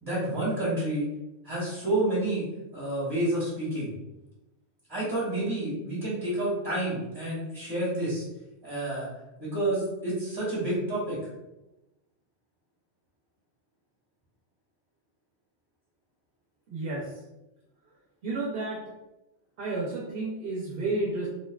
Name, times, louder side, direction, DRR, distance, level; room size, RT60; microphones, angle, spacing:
voice 1, 0.0-1.0 1.4-2.4 2.7-3.9 4.9-8.2 8.6-9.1 9.4-11.2, right 1 dB, 10° right, -11 dB, 1.0 m, -29 dB
voice 2, 16.7-17.1 18.2-18.8 19.6-21.3, right 2 dB, 70° right, -5 dB, 0.8 m, -31 dB
2.7 x 2.2 x 2.2 m, 0.97 s
omnidirectional pair, 1.1 m